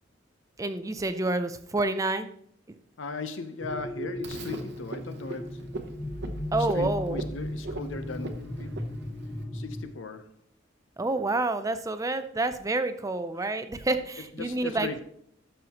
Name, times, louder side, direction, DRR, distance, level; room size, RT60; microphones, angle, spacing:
voice 1, 0.6-2.3 6.5-7.2 11.0-14.9, right 2 dB, 15° right, 0.5 m, -28 dB
voice 2, 3.0-5.7 6.7-8.8 9.5-10.4 14.3-15.0, left 3 dB, 75° left, 0.8 m, -38 dB
sound 1, 3.6-9.9, left 1 dB, 15° left, 0.9 m, -36 dB
Frog, 4.2-9.4, right 2 dB, 60° right, 0.8 m, -41 dB
12.5 x 5.6 x 2.9 m
head